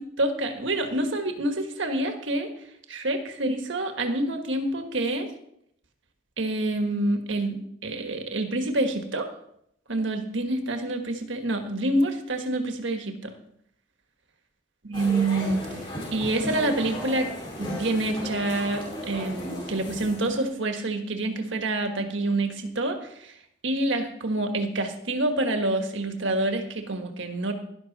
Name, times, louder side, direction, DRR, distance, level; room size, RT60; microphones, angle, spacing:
voice 1, 0.0-2.5 2.9-5.3 6.4-9.3 9.9-13.3 14.8-15.6 16.1-17.3 17.6-23.0 23.6-27.5, right 2 dB, 80° right, 5 dB, 1.5 m, -27 dB
sound 1, 14.9-20.5, equal, 25° left, 4.9 m, -36 dB
12.5 x 11.5 x 4.1 m, 0.74 s
head